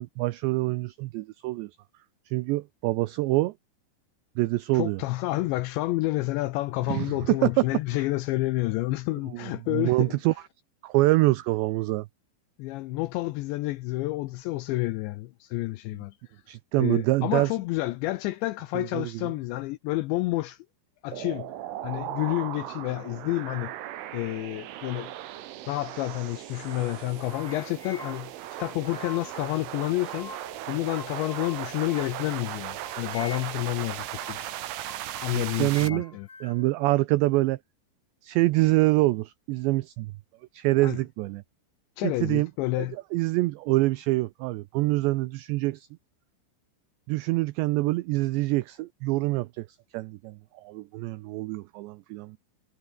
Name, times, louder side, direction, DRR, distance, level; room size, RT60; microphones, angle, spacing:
voice 1, 0.0-1.7 2.3-3.5 4.4-5.0 6.9-7.7 9.3-10.3 10.8-12.1 16.5-17.5 18.7-19.3 35.3-36.1 36.4-37.6 38.2-40.1 40.5-41.4 42.0-42.5 42.8-45.9 47.1-49.7 49.9-52.4, right 20 dB, 85° right, 2.5 m, -25 dB
voice 2, 4.7-10.2 12.6-16.1 16.8-20.6 21.0-21.5 21.8-23.7 24.1-25.1 25.7-28.3 28.6-30.3 30.7-34.5 35.2-36.3 40.8-41.0 42.0-43.0, left 18 dB, 80° left, 2.6 m, -29 dB
sound 1, 21.1-35.9, right 13 dB, 70° right, 4.0 m, -37 dB
sound 2, 26.9-29.4 29.8-30.7 31.0-32.3 32.8-33.7 34.2-34.4 34.9-36.7, left 4 dB, 25° left, 4.6 m, -46 dB
omnidirectional pair, 5.9 m